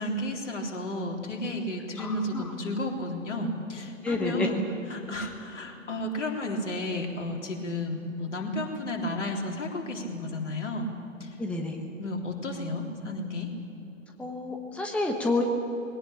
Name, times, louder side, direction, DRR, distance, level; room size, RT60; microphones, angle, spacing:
voice 1, 0.0-10.9 11.2-11.3 12.0-13.5, left 1 dB, 65° left, 1 dB, 3.7 m, -32 dB
voice 2, 2.0-2.5 4.0-4.5 11.4-11.8 14.2-15.4, left 2 dB, 5° left, 2 dB, 1.2 m, -29 dB
21.5 x 18.0 x 8.7 m, 2.9 s
figure-of-eight pair, 115°, 38 cm